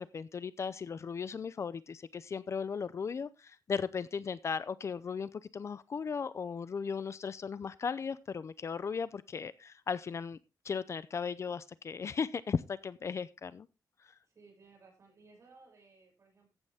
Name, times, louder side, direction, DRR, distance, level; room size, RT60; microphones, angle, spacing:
voice 1, 0.0-10.4 10.6-13.7 14.0-14.1, left 6 dB, 45° left, 16 dB, 0.6 m, -37 dB
voice 2, 14.2-16.5, right 4 dB, 45° right, 0 dB, 6.8 m, -60 dB
14.5 x 8.9 x 3.5 m, 0.26 s
wide cardioid pair, 170°, 7 cm